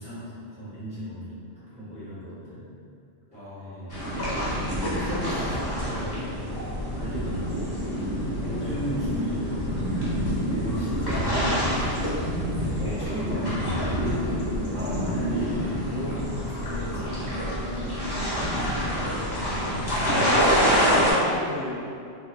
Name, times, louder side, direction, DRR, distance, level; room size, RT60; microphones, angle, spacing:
voice 1, 0.0-2.7 3.3-4.0 4.6-9.6 10.5-12.0 13.0-18.5 19.6-20.7, equal, 5° right, -11 dB, 0.8 m, -36 dB
voice 2, 3.3-4.1 8.4-8.6 12.8-13.2 14.7-15.5 19.5-21.7, left 1 dB, 50° left, -10 dB, 1.2 m, -38 dB
sound 1, 3.9-21.1, equal, 25° left, 0.8 m, -27 dB
4.5 x 2.5 x 2.4 m, 2.4 s
omnidirectional pair, 1.1 m